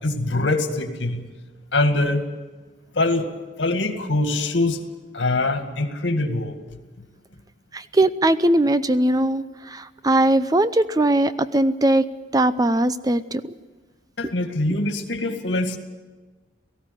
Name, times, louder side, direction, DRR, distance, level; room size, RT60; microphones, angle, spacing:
voice 1, 0.0-1.2 1.7-2.2 3.0-3.3 3.6-4.8 5.1-6.6 14.2-15.8, left 2 dB, 85° left, 7 dB, 2.1 m, -23 dB
voice 2, 7.7-12.0 12.3-13.5, right 1 dB, 20° right, 13 dB, 0.6 m, -20 dB
18.0 x 15.5 x 9.8 m, 1.3 s
head